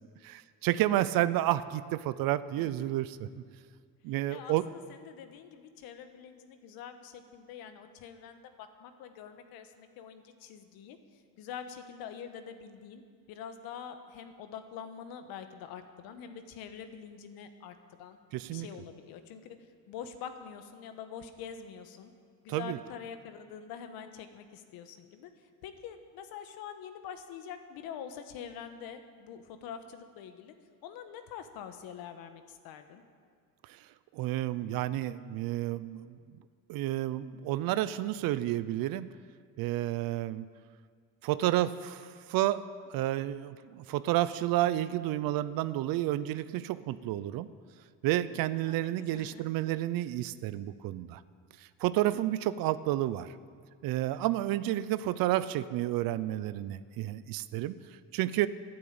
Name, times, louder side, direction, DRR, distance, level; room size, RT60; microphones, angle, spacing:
voice 1, 0.2-3.3 4.0-4.6 18.3-18.7 22.5-22.8 33.6-33.8 34.1-36.2 36.7-39.1 39.6-40.5 41.2-42.6 42.9-47.5 48.0-51.2 51.6-53.3 53.8-57.8 58.1-58.5, right 14 dB, 75° right, 15 dB, 0.6 m, -30 dB
voice 2, 2.6-2.9 4.3-13.0 13.3-18.2 18.5-22.1 22.4-30.5 30.8-33.0 48.6-49.5, left 8 dB, 80° left, 8 dB, 1.3 m, -45 dB
12.0 x 11.0 x 8.7 m, 2.1 s
cardioid pair, 155°, 36 cm